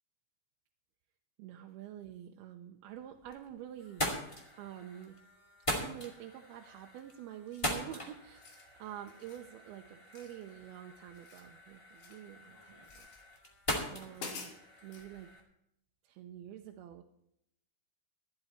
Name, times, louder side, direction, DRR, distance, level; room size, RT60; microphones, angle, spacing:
voice 1, 1.4-4.0 4.6-5.2 5.7-13.1 13.9-14.5 14.8-15.3 16.0-17.0, right 11 dB, 80° right, 3 dB, 2.7 m, -47 dB
sound 1, 2.9-3.5 3.8-15.4, equal, 15° left, 1.3 m, -41 dB
sound 2, 7.5-7.8 8.3-8.7 9.1-9.5 10.1-10.8 11.0-12.3 12.8-13.2 13.7-13.8 14.1-15.1, left 5 dB, 75° left, 4.0 m, -49 dB
13.5 x 12.0 x 4.4 m, 0.77 s
omnidirectional pair, 4.5 m